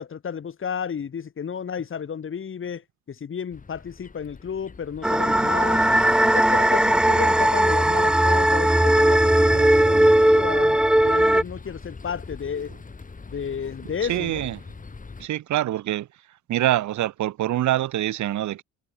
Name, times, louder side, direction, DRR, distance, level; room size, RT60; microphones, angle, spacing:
voice 1, 0.0-5.8 6.3-12.7 13.3-14.5, left 7 dB, 45° left, 2.1 m, -32 dB
sound 1, 3.5-15.3, left 4 dB, 25° left, 3.6 m, -43 dB
sound 2, 5.0-11.4, right 1 dB, 5° right, 0.4 m, -18 dB
voice 2, 14.0-14.6 15.2-16.1 16.5-18.6, right 13 dB, 70° right, 1.3 m, -25 dB
cardioid pair, 90°, 30 cm